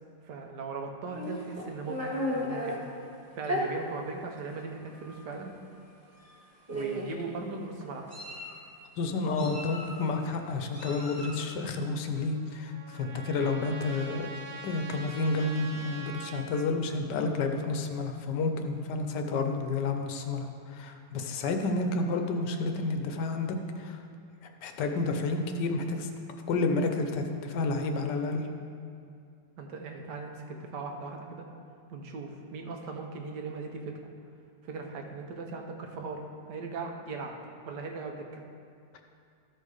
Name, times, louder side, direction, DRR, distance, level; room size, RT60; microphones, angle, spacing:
voice 1, 0.2-2.0 2.3-2.8 3.3-5.6 6.7-8.1 29.6-31.5 31.9-34.0 34.6-37.3 37.6-38.4, right 4 dB, 70° right, 3 dB, 1.4 m, -39 dB
Meow, 1.1-2.8 3.4-3.6 4.5-4.6 5.0-5.2 6.2-6.3 6.7-7.2 7.8-8.5 9.4-10.1 10.7-11.4, equal, 10° right, 1.6 m, -35 dB
voice 2, 9.0-14.3 14.6-24.0 24.6-26.1 26.5-28.5 38.9-39.0, left 3 dB, 75° left, 5 dB, 1.3 m, -30 dB
Trumpet, 12.1-16.7, right 3 dB, 55° right, 0.7 m, -44 dB
13.0 x 4.6 x 4.8 m, 2.4 s
omnidirectional pair, 1.9 m